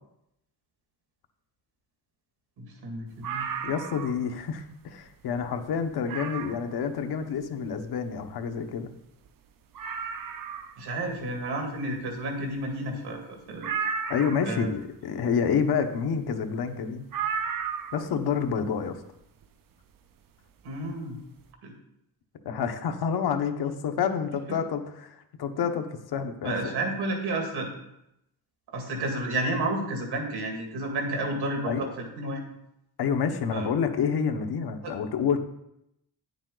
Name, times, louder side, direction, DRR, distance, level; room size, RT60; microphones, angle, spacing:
voice 1, 2.6-3.5 10.8-13.7 14.4-14.7 20.6-21.2 21.6-21.8 26.4-27.7 28.7-32.4 33.5-33.7 34.8-34.9, right 2 dB, 90° right, 2 dB, 2.2 m, -31 dB
sound 1, 3.2-4.3 4.7-4.8 5.3-5.4 6.1-6.7 8.5-8.6 8.7-8.8 9.3-9.4 9.7-10.8 13.6-14.6 17.1-18.1 19.4-19.5, right 6 dB, 60° right, 0.7 m, -33 dB
voice 2, 3.6-8.9 14.1-17.0 17.9-19.0 22.4-26.7 31.7-31.9 33.0-35.4, left 6 dB, 85° left, 7 dB, 1.0 m, -28 dB
10.0 x 7.2 x 3.9 m, 0.81 s
wide cardioid pair, 165°, 37 cm